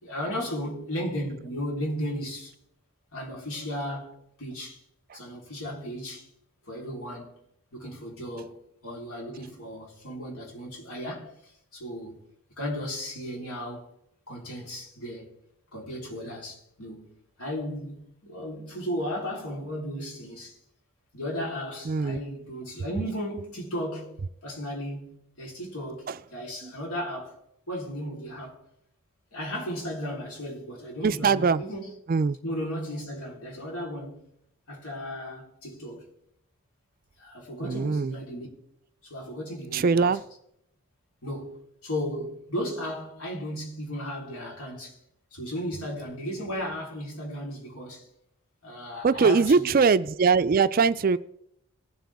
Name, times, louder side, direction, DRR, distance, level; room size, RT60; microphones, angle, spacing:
voice 1, 0.0-2.5 3.1-4.8 5.1-6.3 6.7-7.4 7.7-8.6 8.8-12.3 12.6-13.9 14.3-15.4 15.7-20.6 21.1-27.4 27.7-28.6 29.3-31.9 32.4-34.2 34.7-36.1 37.2-38.5 39.0-40.3 41.2-45.0 45.3-48.1 48.6-49.8, equal, 80° left, 3.8 m, -35 dB
voice 2, 21.8-22.2 26.1-26.2 26.6-26.7 31.0-31.6 32.1-32.4 37.6-38.2 39.7-40.2 49.0-51.2, right 5 dB, 40° right, 0.3 m, -22 dB
19.0 x 7.6 x 3.5 m
head